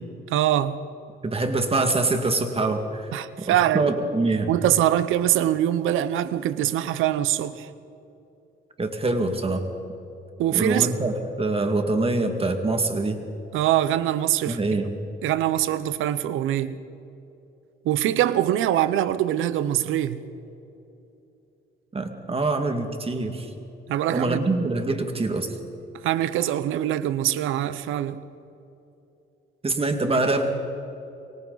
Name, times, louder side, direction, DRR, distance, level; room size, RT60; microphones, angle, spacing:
voice 1, 0.3-0.8 3.1-3.9 4.5-7.7 10.4-10.9 13.5-14.6 15.2-16.8 17.8-20.2 23.9-24.4 26.0-28.2, right 12 dB, 90° right, 0.9 m, -23 dB
voice 2, 1.2-3.1 3.4-4.5 8.8-9.7 10.5-13.2 14.5-14.9 21.9-23.5 24.1-25.5 29.6-30.5, right 2 dB, 30° right, 2.2 m, -24 dB
27.5 x 24.0 x 4.1 m
cardioid pair, 90°, 20 cm